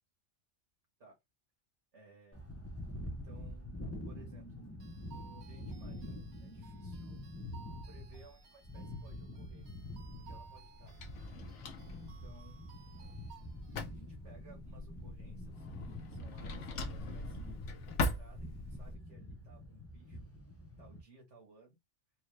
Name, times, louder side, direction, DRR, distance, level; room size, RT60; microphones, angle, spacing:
voice 1, 1.9-2.6 3.1-3.8 4.0-4.6 5.1-7.2 7.7-9.7 10.2-11.0 11.9-12.7 13.8-20.3 20.8-21.8, right 3 dB, 85° right, 2.0 m, -60 dB
sound 1, 2.3-21.0, left 1 dB, 15° left, 0.5 m, -46 dB
sound 2, 4.8-13.9, right 6 dB, 65° right, 1.2 m, -59 dB
Drawer open or close, 9.6-18.9, left 2 dB, 85° left, 1.1 m, -42 dB
4.4 x 2.3 x 3.2 m
omnidirectional pair, 1.2 m